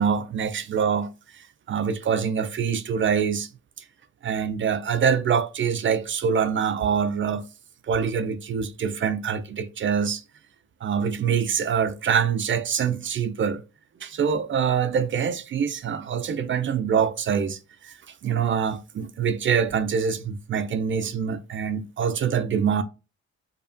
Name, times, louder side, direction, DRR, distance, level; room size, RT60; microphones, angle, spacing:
voice 1, 0.0-3.5 4.2-7.4 7.9-10.2 10.8-13.6 14.0-18.0 18.2-22.8, right 7 dB, 40° right, 0.4 m, -25 dB
4.9 x 2.3 x 2.6 m
cardioid pair, 90°, 30 cm